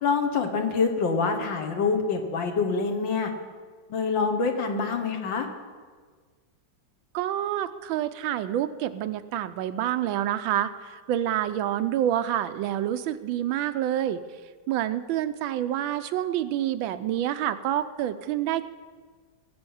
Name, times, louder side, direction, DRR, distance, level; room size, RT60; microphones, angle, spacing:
voice 1, 0.0-3.3 3.9-5.5, left 4 dB, 70° left, 5 dB, 2.0 m, -26 dB
voice 2, 7.1-14.2 14.7-18.6, right 11 dB, 90° right, 12 dB, 1.4 m, -27 dB
19.0 x 7.8 x 5.6 m, 1.5 s
omnidirectional pair, 2.1 m